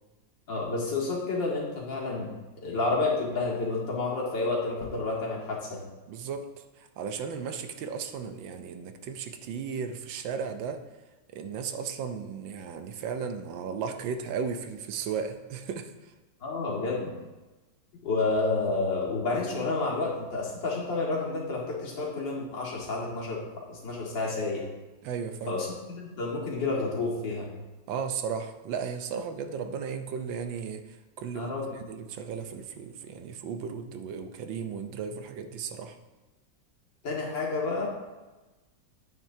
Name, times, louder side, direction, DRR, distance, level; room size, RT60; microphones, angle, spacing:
voice 1, 0.5-2.3 2.6-5.8 16.4-17.1 18.0-24.6 25.5-27.5 31.4-31.7 37.0-37.9, left 3 dB, 75° left, -4 dB, 2.7 m, -30 dB
voice 2, 6.1-6.5 6.8-10.8 11.3-16.1 25.0-25.6 27.9-30.8 31.2-36.0, right 6 dB, 85° right, 7 dB, 1.5 m, -35 dB
9.6 x 8.9 x 2.8 m, 1.2 s
omnidirectional pair, 2.0 m